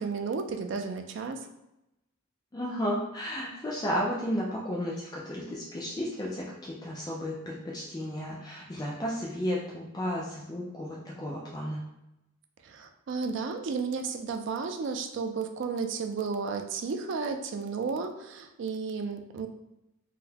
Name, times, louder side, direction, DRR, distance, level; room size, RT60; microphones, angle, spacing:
voice 1, 0.0-1.4 12.6-19.5, right 5 dB, 60° right, 6 dB, 0.3 m, -33 dB
voice 2, 2.5-11.8, equal, 20° left, -4 dB, 0.4 m, -33 dB
3.9 x 2.1 x 2.7 m, 0.88 s
head